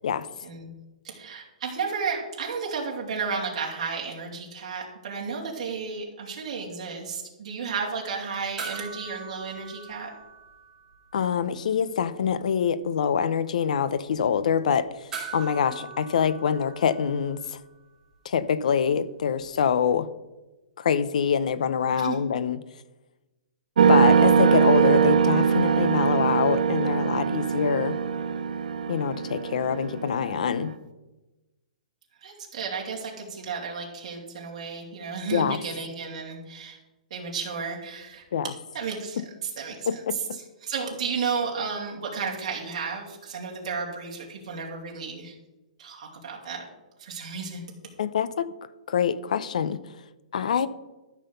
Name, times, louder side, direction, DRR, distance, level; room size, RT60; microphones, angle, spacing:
voice 1, 1.0-10.1 21.9-22.2 32.2-36.8 37.1-38.2 38.7-40.2 40.6-45.3 45.8-46.7 47.0-47.7, right 5 dB, 45° right, -2 dB, 2.8 m, -33 dB
sound 1, 8.6-11.2 11.5-11.6 15.1-17.7 19.9-20.0, right 5 dB, 10° right, 2.9 m, -41 dB
voice 2, 11.1-14.9 15.3-17.6 18.2-20.1 20.8-22.6 23.9-28.0 28.9-30.7 35.3-35.6 38.3-38.5 39.9-40.2 48.0-48.5 48.9-49.8 50.3-50.7, left 7 dB, 60° left, 16 dB, 0.7 m, -25 dB
sound 2, 23.8-30.7, right 6 dB, 70° right, 0.8 m, -22 dB
13.0 x 6.3 x 5.3 m, 1.1 s
hypercardioid pair, 175°, 4 cm